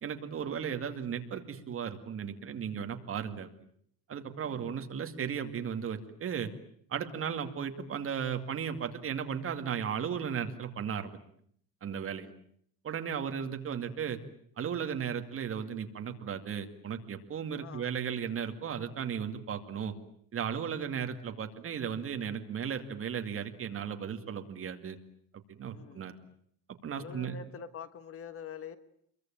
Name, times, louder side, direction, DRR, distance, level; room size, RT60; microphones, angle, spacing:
voice 1, 0.0-3.5 4.1-6.5 6.9-11.2 11.8-12.3 12.8-14.2 14.6-19.9 20.3-25.0 25.5-26.1 26.8-27.4, right 7 dB, 35° right, 6 dB, 2.5 m, -35 dB
voice 2, 4.4-4.7 12.2-12.4 17.5-17.9 20.9-21.0 25.7-26.1 26.9-28.8, left 7 dB, 40° left, 12 dB, 1.4 m, -46 dB
27.5 x 23.0 x 9.0 m, 0.65 s
cardioid pair, 175°, 37 cm